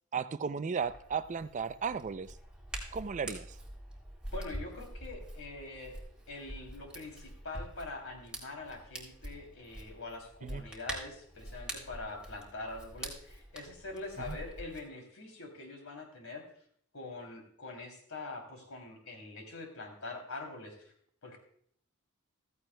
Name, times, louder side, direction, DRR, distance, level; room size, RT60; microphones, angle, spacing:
voice 1, 0.1-2.4 2.9-3.6 10.4-10.6 14.2-14.4, right 6 dB, 35° right, 13 dB, 0.4 m, -35 dB
Hands, 0.8-14.8, right 1 dB, 5° right, 1.8 m, -45 dB
voice 2, 4.3-5.9 6.3-16.4 16.9-20.9 21.2-21.4, left 2 dB, 65° left, 2 dB, 3.0 m, -44 dB
15.0 x 14.0 x 2.2 m, 0.63 s
head